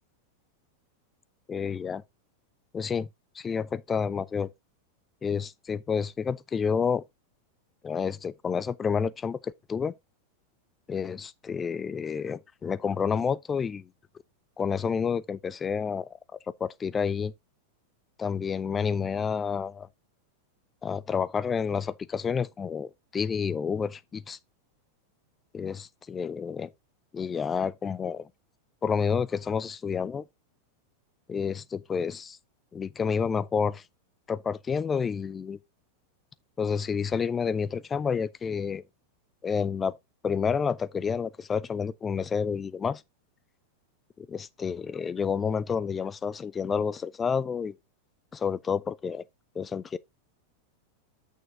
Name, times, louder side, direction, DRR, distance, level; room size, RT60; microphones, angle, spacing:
voice 1, 1.5-2.0 2.7-3.1 3.4-4.5 5.2-7.0 7.8-9.9 10.9-13.9 14.6-16.1 16.6-17.3 18.2-19.9 20.8-24.4 25.5-26.7 27.1-28.3 28.8-30.2 31.3-32.4 32.7-33.8 34.3-35.6 36.6-38.8 39.4-40.0 40.2-43.0 44.2-47.7 48.3-49.2 49.6-50.0, left 6 dB, 20° left, 0.4 m, -29 dB
6.4 x 6.4 x 3.6 m
figure-of-eight pair, 90°, 0 cm